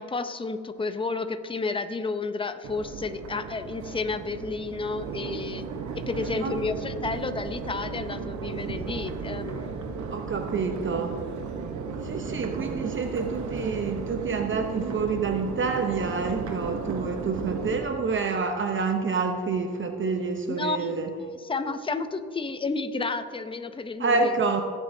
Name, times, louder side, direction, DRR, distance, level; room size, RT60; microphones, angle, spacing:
voice 1, 0.0-5.7 6.1-9.7 20.5-20.9 21.2-24.3, left 3 dB, 15° left, 9 dB, 0.6 m, -31 dB
Crowd, 2.6-17.8, right 5 dB, 70° right, 1.1 m, -35 dB
voice 2, 6.2-6.6 10.1-11.2 12.0-21.1 24.0-24.6, right 4 dB, 40° right, 5 dB, 0.8 m, -28 dB
18.5 x 8.2 x 2.7 m, 2.2 s
cardioid pair, 90°, 30 cm